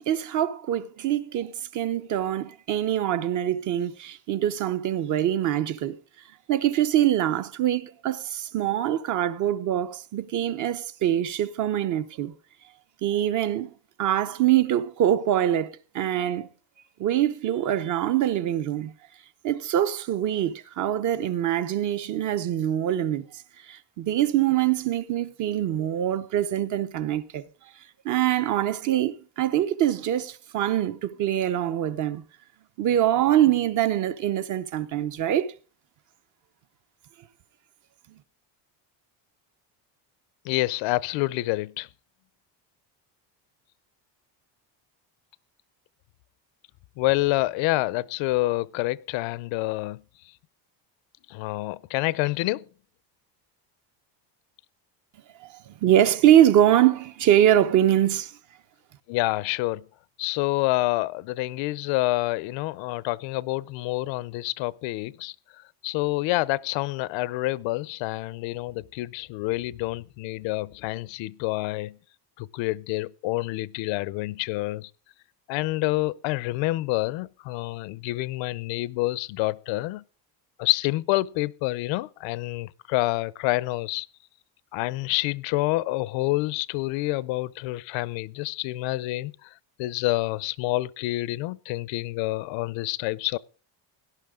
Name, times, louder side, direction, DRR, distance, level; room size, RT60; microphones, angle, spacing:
voice 1, 0.0-6.0 6.5-12.3 13.0-13.7 14.0-16.5 17.0-18.9 19.4-27.7 28.0-32.2 32.8-35.5 55.4-58.4, right 11 dB, 45° right, 0.8 m, -24 dB
voice 2, 40.4-41.9 47.0-50.0 51.3-52.6 59.1-59.9 60.2-72.0 72.4-74.9 75.5-80.0 80.6-84.1 84.7-93.4, left 19 dB, 80° left, 0.7 m, -28 dB
17.5 x 11.5 x 3.7 m
cardioid pair, 180°, 45 cm